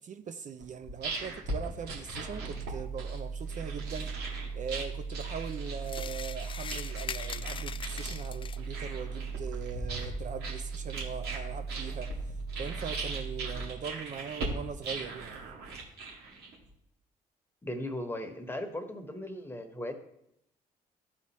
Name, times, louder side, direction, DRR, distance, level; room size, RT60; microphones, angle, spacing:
voice 1, 0.0-4.1 4.6-15.4, right 7 dB, 45° right, 0.6 m, -41 dB
sound 1, 0.6-16.7, right 2 dB, 70° right, 2.0 m, -40 dB
sound 2, 2.1-13.6, right 4 dB, 85° right, 1.4 m, -38 dB
sound 3, 5.8-8.8, left 7 dB, 30° left, 0.3 m, -41 dB
voice 2, 17.6-19.9, left 1 dB, 15° left, 1.3 m, -37 dB
12.5 x 4.2 x 3.1 m
supercardioid pair, 60°, 17 cm